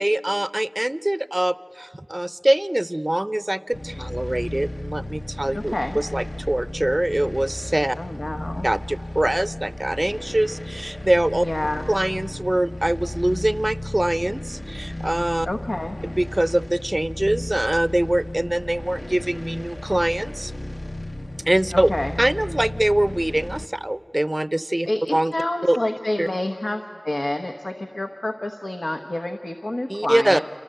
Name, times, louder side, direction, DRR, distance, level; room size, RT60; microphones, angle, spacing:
voice 1, 0.0-8.0 8.6-11.5 11.9-15.5 16.2-20.5 21.5-21.9 22.2-25.3 25.6-25.8 26.2-26.3 29.9-30.4, right 1 dB, 30° right, 15 dB, 0.5 m, -23 dB
sound 1, 3.7-23.6, left 1 dB, 40° left, 0.7 m, -34 dB
voice 2, 5.5-6.0 7.9-8.7 11.4-11.8 15.5-16.0 21.7-22.1 24.9-30.4, left 1 dB, 75° left, 4 dB, 1.1 m, -28 dB
28.0 x 27.5 x 7.8 m, 2.7 s
wide cardioid pair, 40°, 0 cm